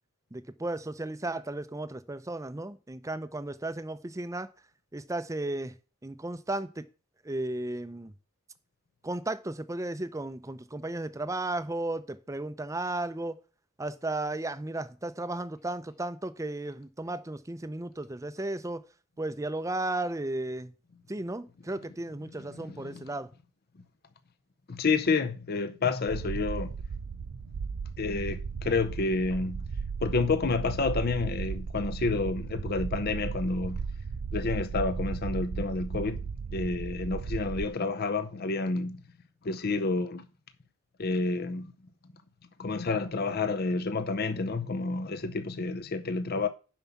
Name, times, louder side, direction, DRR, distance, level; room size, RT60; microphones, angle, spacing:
voice 1, 0.3-4.5 4.9-5.7 6.0-6.8 7.2-8.1 9.0-13.4 13.8-18.8 19.2-20.7 21.1-23.3, right 2 dB, 15° right, 0.6 m, -34 dB
voice 2, 22.3-23.0 24.7-26.8 28.0-29.7 30.0-33.8 34.3-36.2 36.5-39.0 39.4-40.3 41.0-41.7 42.6-46.5, left 3 dB, 45° left, 0.6 m, -29 dB
sound 1, 26.1-37.7, right 5 dB, 80° right, 0.4 m, -35 dB
7.1 x 5.7 x 7.1 m
head